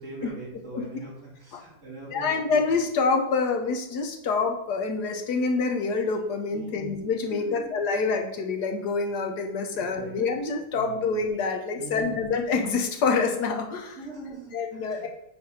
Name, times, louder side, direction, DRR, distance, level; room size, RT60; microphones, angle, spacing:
voice 1, 0.0-2.7 6.5-7.0 7.3-7.7 9.7-10.4 10.7-11.1 11.7-12.3 14.0-15.1, right 3 dB, 45° right, -5 dB, 3.2 m, -42 dB
voice 2, 2.1-14.0 14.5-15.1, left 4 dB, 75° left, 3 dB, 1.5 m, -26 dB
8.7 x 3.5 x 5.6 m, 0.82 s
omnidirectional pair, 1.8 m